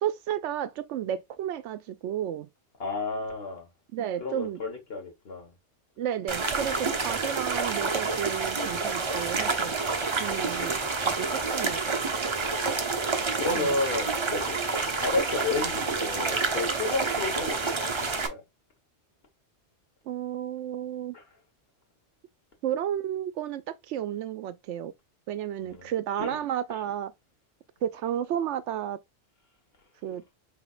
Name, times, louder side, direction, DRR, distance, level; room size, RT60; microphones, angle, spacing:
voice 1, 0.0-2.5 3.9-4.6 6.0-9.8 10.2-12.0 13.5-13.7 20.1-21.1 22.6-24.9 25.3-27.1 27.8-29.0 30.0-30.2, right 10 dB, 90° right, 0.9 m, -32 dB
voice 2, 2.8-3.7 4.2-5.5 13.3-14.6 15.0-18.4 21.1-21.2 25.6-25.9 26.2-26.4 26.7-26.8, left 3 dB, 60° left, 1.8 m, -32 dB
sound 1, 6.3-18.3, right 4 dB, 30° right, 0.7 m, -28 dB
5.1 x 3.6 x 2.4 m
omnidirectional pair, 1.2 m